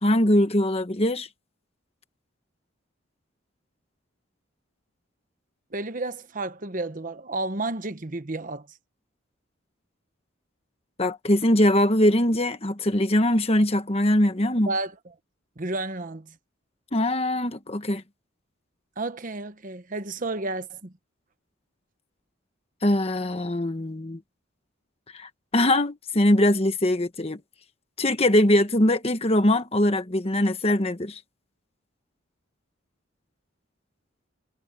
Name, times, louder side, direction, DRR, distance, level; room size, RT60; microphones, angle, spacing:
voice 1, 0.0-1.3 11.0-14.7 16.9-18.0 22.8-24.2 25.1-27.4 28.0-31.2, left 1 dB, 30° left, 1.2 m, -22 dB
voice 2, 5.7-8.7 14.7-14.9 15.6-16.3 19.0-20.9, right 2 dB, 40° right, 1.0 m, -31 dB
head